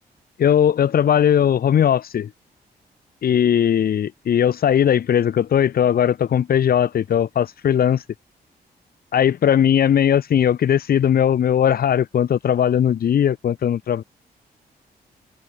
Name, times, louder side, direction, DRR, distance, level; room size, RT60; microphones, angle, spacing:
voice 1, 0.4-2.3 3.2-8.0 9.1-14.0, left 9 dB, 60° left, 2.2 m, -18 dB
cardioid pair, 125°, 17 cm